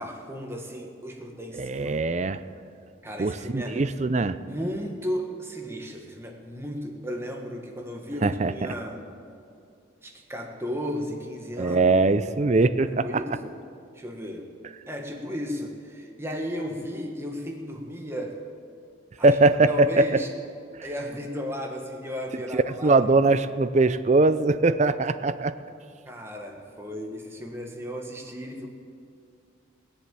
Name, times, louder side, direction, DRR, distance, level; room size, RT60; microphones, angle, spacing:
voice 1, 0.0-1.9 3.0-3.8 4.4-9.1 10.0-11.9 12.9-13.6 13.9-14.5 14.9-18.4 19.2-19.4 19.7-20.3 20.8-23.1 26.0-28.7, equal, 10° right, 2 dB, 1.4 m, -35 dB
voice 2, 1.5-2.4 3.2-4.4 8.2-8.5 11.6-13.2 19.2-20.1 22.5-25.5, right 3 dB, 35° right, 13 dB, 0.4 m, -21 dB
17.5 x 7.2 x 8.9 m, 2.4 s
head